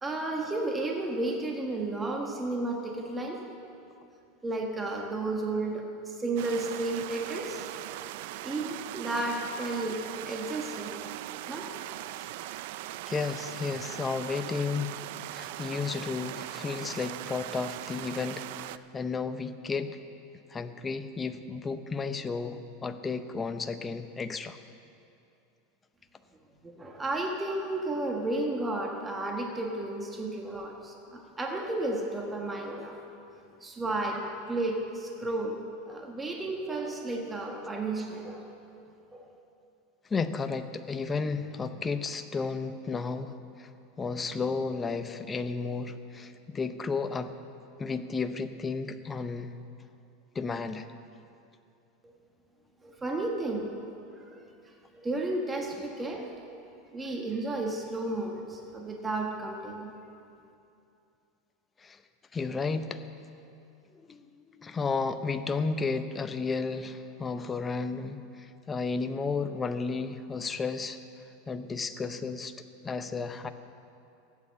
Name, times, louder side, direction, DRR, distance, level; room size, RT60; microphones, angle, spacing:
voice 1, 0.0-3.4 4.4-7.6 8.4-11.0 11.5-11.7 26.6-33.0 33.6-35.6 35.9-38.5 39.1-39.3 52.0-52.1 52.8-53.7 54.3-54.4 54.9-56.7 56.9-59.9, right 2 dB, 15° right, 1 dB, 1.3 m, -33 dB
sound 1, 6.4-18.8, right 14 dB, 65° right, 0.4 m, -40 dB
voice 2, 13.1-15.0 15.3-19.9 20.5-24.6 40.1-43.7 44.0-47.3 47.8-49.5 50.3-50.9 61.8-62.0 62.3-63.0 64.1-71.0 71.5-72.5 72.8-73.5, left 4 dB, 15° left, 9 dB, 0.6 m, -33 dB
14.0 x 8.8 x 7.2 m, 2.6 s
supercardioid pair, 140°, 0 cm